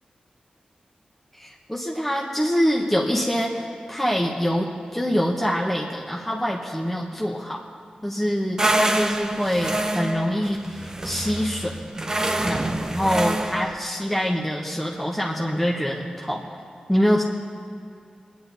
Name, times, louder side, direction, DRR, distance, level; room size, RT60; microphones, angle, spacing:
voice 1, 1.3-7.6 8.0-11.7 12.4-12.6 12.9-16.5 16.9-17.2, equal, 5° left, -3 dB, 1.2 m, -25 dB
sound 1, 8.6-13.7, right 1 dB, 25° right, 0.8 m, -26 dB
24.0 x 10.0 x 4.1 m, 2.4 s
wide cardioid pair, 110°, 3 cm